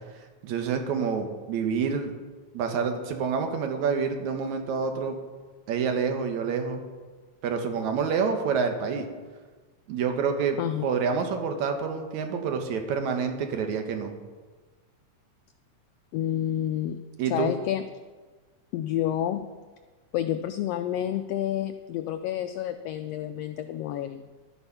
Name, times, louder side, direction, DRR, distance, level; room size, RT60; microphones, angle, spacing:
voice 1, 0.4-2.1 2.5-5.2 5.7-6.8 7.4-9.1 9.9-10.6 10.8-14.1 17.2-17.5, right 6 dB, 75° right, 5 dB, 2.5 m, -27 dB
voice 2, 16.1-17.0 17.3-17.8 18.7-19.5 20.1-24.3, left 11 dB, 85° left, 9 dB, 1.4 m, -29 dB
12.0 x 9.8 x 5.8 m, 1.4 s
omnidirectional pair, 3.4 m